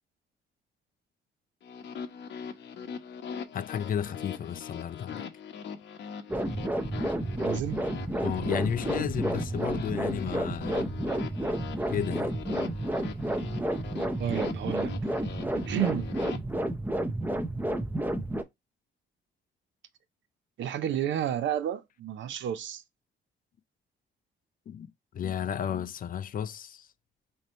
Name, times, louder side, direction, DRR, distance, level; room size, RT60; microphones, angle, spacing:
sound 1, 1.6-16.4, left 7 dB, 65° left, 0.8 m, -41 dB
voice 1, 3.5-5.2 8.2-11.1 11.9-12.3 24.7-26.9, left 9 dB, 45° left, 0.4 m, -33 dB
sound 2, 6.3-18.4, right 1 dB, 10° right, 0.6 m, -31 dB
voice 2, 7.3-7.8 14.2-15.0 15.5-16.1 20.6-22.8, right 10 dB, 70° right, 0.6 m, -31 dB
3.2 x 2.7 x 4.1 m
cardioid pair, 90°, 20 cm